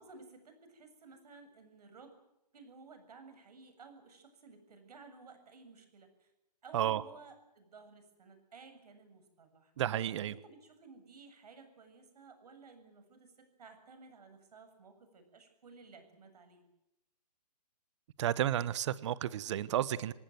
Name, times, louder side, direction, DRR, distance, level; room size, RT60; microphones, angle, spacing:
voice 1, 0.0-2.2 2.5-6.3 6.6-9.7 10.3-16.7, right 4 dB, 65° right, 9 dB, 7.4 m, -56 dB
voice 2, 9.8-10.3 18.2-20.1, right 11 dB, 45° right, 18 dB, 1.2 m, -32 dB
26.5 x 19.0 x 7.9 m, 0.88 s
hypercardioid pair, 150°, 21 cm